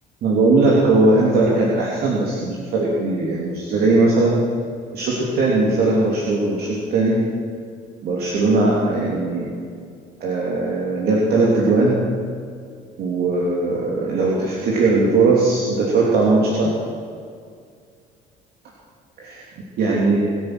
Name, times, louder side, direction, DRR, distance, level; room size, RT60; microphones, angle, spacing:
voice 1, 0.2-4.4 4.9-7.3 8.0-9.5 10.2-12.0 13.0-16.7 19.2-19.4 19.8-20.4, right 2 dB, 70° right, -4 dB, 3.1 m, -19 dB
23.5 x 9.3 x 6.3 m, 2.1 s
cardioid pair, 110°, 17 cm